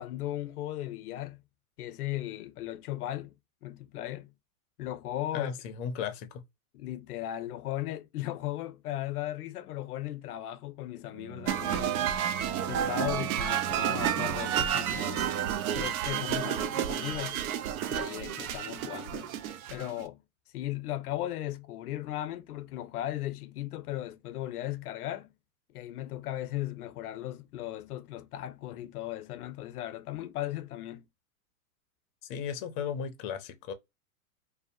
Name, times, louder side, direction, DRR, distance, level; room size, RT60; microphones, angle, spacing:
voice 1, 0.0-1.4 1.8-3.3 3.6-4.3 4.8-5.6 6.7-12.1 12.6-15.3 15.7-17.4 17.9-19.3 19.7-20.2 20.5-25.3 25.7-31.1, left 14 dB, 90° left, 0.5 m, -37 dB
voice 2, 5.3-6.4 32.3-33.7, left 7 dB, 40° left, 0.5 m, -35 dB
Bowed string instrument, 11.1-16.2, right 6 dB, 25° right, 0.5 m, -43 dB
sound 1, 11.5-20.0, right 10 dB, 75° right, 0.5 m, -31 dB
2.6 x 2.0 x 2.5 m
hypercardioid pair, 120°, 44 cm